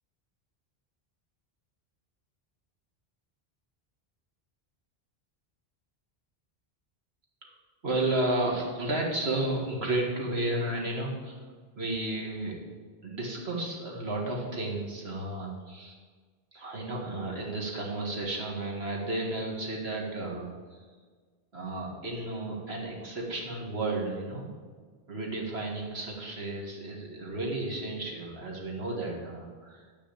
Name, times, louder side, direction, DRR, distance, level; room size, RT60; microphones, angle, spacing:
voice 1, 7.8-11.4 11.7-12.5 13.0-16.0 16.5-20.5 21.5-24.5 25.1-29.8, right 2 dB, 85° right, -1 dB, 2.2 m, -32 dB
11.0 x 4.9 x 8.4 m, 1.5 s
omnidirectional pair, 1.0 m